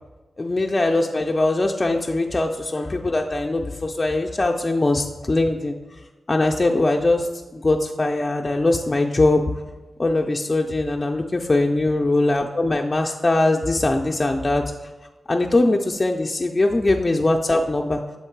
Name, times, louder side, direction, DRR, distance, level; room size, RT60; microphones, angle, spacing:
voice 1, 0.4-5.8 6.3-7.3 7.5-9.4 10.0-14.6 15.3-18.0, left 2 dB, 30° left, 1 dB, 0.3 m, -21 dB
7.1 x 3.6 x 4.5 m, 1.2 s
wide cardioid pair, 100°, 0 cm